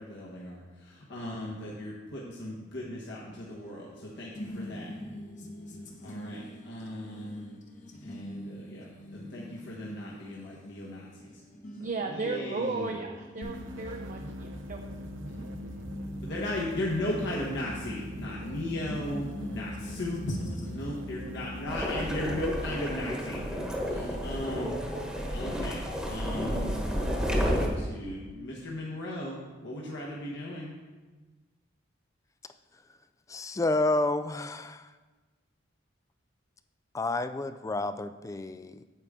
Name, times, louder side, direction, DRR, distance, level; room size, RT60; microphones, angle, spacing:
voice 1, 0.0-5.0 6.0-7.5 8.0-11.3 12.1-13.0 16.2-20.3 20.7-24.8 25.3-30.7, left 1 dB, 65° left, -4 dB, 1.3 m, -37 dB
sound 1, 3.5-21.0, equal, 40° left, 1.0 m, -45 dB
voice 2, 11.7-14.8, right 3 dB, 40° right, 3 dB, 0.6 m, -35 dB
sound 2, 13.4-22.5, left 1 dB, 75° right, 0.7 m, -41 dB
sound 3, 21.7-27.7, equal, 5° right, 1.2 m, -31 dB
voice 3, 33.3-34.9 36.9-38.8, left 2 dB, 15° left, 11 dB, 0.3 m, -30 dB
9.1 x 8.2 x 3.7 m, 1.3 s
head